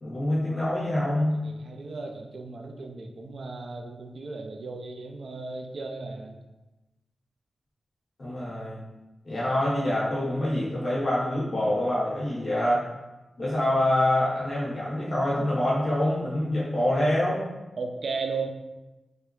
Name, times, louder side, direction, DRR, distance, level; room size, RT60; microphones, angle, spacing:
voice 1, 0.0-1.4 8.2-8.8 9.2-12.8 13.4-17.5, left 1 dB, 40° left, -8 dB, 1.0 m, -26 dB
voice 2, 1.4-6.4 17.8-18.5, right 4 dB, 60° right, 3 dB, 0.4 m, -35 dB
3.2 x 2.6 x 3.1 m, 1.1 s
wide cardioid pair, 145°, 0 cm